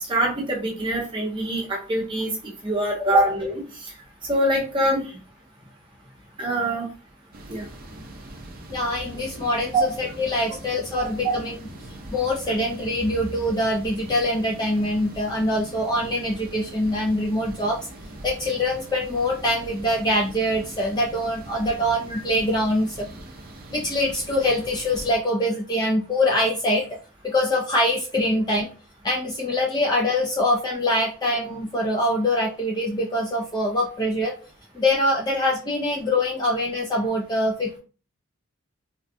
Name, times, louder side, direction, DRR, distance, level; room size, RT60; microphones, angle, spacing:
voice 1, 0.1-2.3 2.6-3.6 4.3-5.0 6.4-6.9 7.5-7.6 9.7-9.8 22.1-22.2, right 1 dB, 25° right, -2 dB, 0.8 m, -23 dB
sound 1, 7.3-25.2, right 1 dB, 45° right, 0.5 m, -41 dB
voice 2, 8.7-11.6 12.1-17.8 18.2-23.1 23.7-26.8 27.2-28.7 29.0-34.3 34.7-37.8, left 1 dB, 20° left, -2 dB, 0.3 m, -24 dB
3.5 x 2.1 x 2.5 m, 0.36 s
head